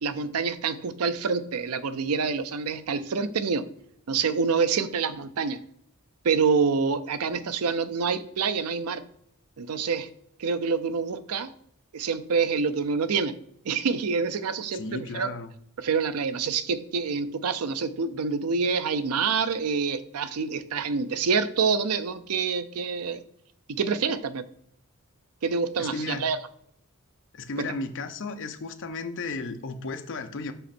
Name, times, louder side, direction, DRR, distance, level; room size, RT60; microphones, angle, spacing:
voice 1, 0.0-3.7 4.1-5.6 6.2-9.0 9.6-10.1 10.4-11.5 11.9-13.4 13.7-15.3 15.8-23.2 23.7-24.4 25.4-26.4, right 5 dB, 85° right, 13 dB, 0.5 m, -27 dB
voice 2, 14.7-15.5 25.8-26.2 27.3-30.5, left 3 dB, 60° left, 7 dB, 0.8 m, -34 dB
6.0 x 5.5 x 4.3 m, 0.70 s
head